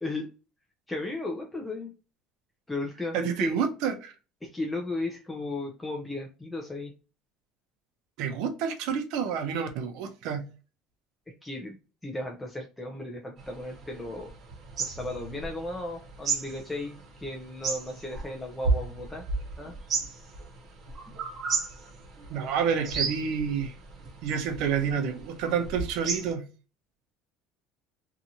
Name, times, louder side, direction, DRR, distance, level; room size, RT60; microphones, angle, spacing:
voice 1, 0.9-1.9 2.7-3.6 4.4-6.9 11.4-14.3 14.8-19.2 19.6-19.8, left 2 dB, 5° left, 0.4 m, -35 dB
voice 2, 3.1-4.1 8.2-10.5 22.3-23.7 24.2-26.4, right 7 dB, 70° right, 0.6 m, -29 dB
sound 1, 13.4-26.3, right 4 dB, 35° right, 0.8 m, -34 dB
2.8 x 2.4 x 2.7 m
cardioid pair, 150°, 0 cm